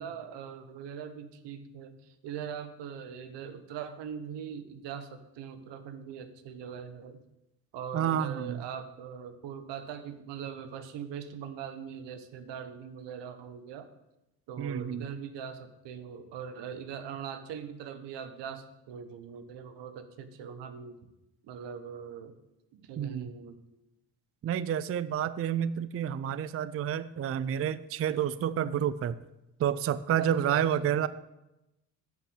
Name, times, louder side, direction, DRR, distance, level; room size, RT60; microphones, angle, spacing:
voice 1, 0.0-7.2 7.7-13.9 14.5-21.0 21.4-22.3 22.7-23.6 30.2-31.0, right 7 dB, 75° right, 10 dB, 1.2 m, -41 dB
voice 2, 7.9-8.6 14.6-15.1 23.0-23.3 24.4-29.2 29.6-31.1, right 9 dB, 35° right, 16 dB, 0.4 m, -29 dB
8.9 x 5.9 x 8.0 m, 0.94 s
supercardioid pair, 65°, 43 cm